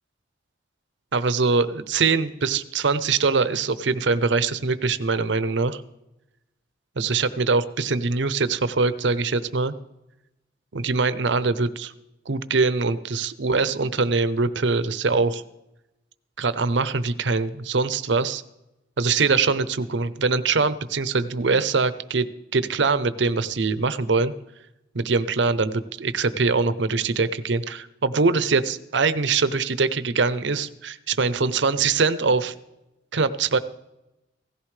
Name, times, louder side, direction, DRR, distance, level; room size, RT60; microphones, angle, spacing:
voice 1, 1.1-5.8 7.0-9.7 10.7-11.9 12.3-15.4 16.4-18.4 19.0-22.3 22.5-24.3 24.9-32.5 33.1-33.6, right 4 dB, 80° right, 13 dB, 0.7 m, -23 dB
17.0 x 14.5 x 3.3 m, 0.92 s
head